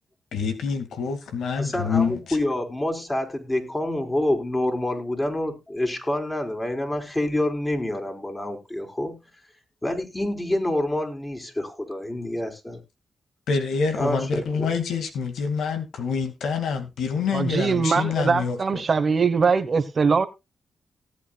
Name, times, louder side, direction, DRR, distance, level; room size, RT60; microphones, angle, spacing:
voice 1, 0.3-2.4 13.5-18.8, left 5 dB, 80° left, 2.2 m, -26 dB
voice 2, 1.6-9.2 9.8-12.8 14.0-14.7, left 1 dB, 20° left, 4.3 m, -27 dB
voice 3, 17.3-20.3, right 5 dB, 50° right, 1.3 m, -22 dB
18.0 x 8.6 x 2.4 m
supercardioid pair, 55°, 0 cm